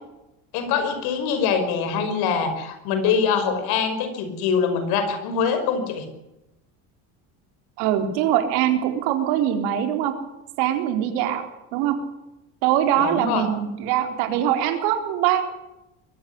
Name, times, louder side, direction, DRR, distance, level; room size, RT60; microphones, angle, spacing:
voice 1, 0.5-6.1 13.0-13.4, left 6 dB, 75° left, 8 dB, 5.7 m, -23 dB
voice 2, 7.8-10.1 10.6-11.5 11.7-12.0 12.6-15.4, right 11 dB, 85° right, 6 dB, 4.1 m, -22 dB
22.5 x 15.0 x 9.7 m, 0.95 s
cardioid pair, 125°, 38 cm